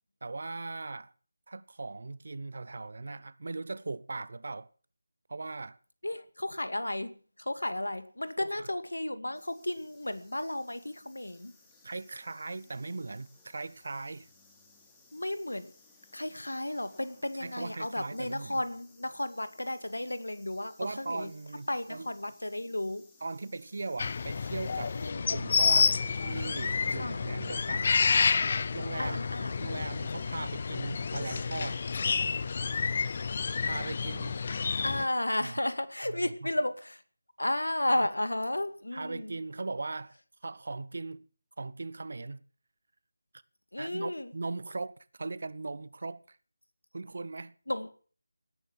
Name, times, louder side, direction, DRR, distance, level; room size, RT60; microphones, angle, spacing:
voice 1, 0.2-1.1 1.5-4.7 5.3-5.8 8.4-8.7 11.8-14.3 17.4-18.6 20.8-22.1 23.2-25.0 25.3-28.1 28.7-29.2 29.6-31.8 33.6-34.4 35.4-35.5 36.0-36.5 38.9-40.1 40.4-41.3 41.6-42.4 43.8-46.4 46.9-47.5, right 3 dB, 50° right, 1.1 m, -39 dB
voice 2, 6.0-11.5 15.1-15.7 16.1-21.3 21.7-23.0 24.9-25.3 26.9-27.2 29.0-29.5 34.8-37.0 37.4-39.3 43.7-44.3 47.7-47.9, left 1 dB, 80° left, 2.2 m, -33 dB
sound 1, 9.3-25.1, left 3 dB, 10° left, 3.1 m, -62 dB
sound 2, 24.0-35.1, left 5 dB, 35° left, 0.7 m, -29 dB
18.0 x 10.5 x 7.5 m
figure-of-eight pair, 160°, 0 cm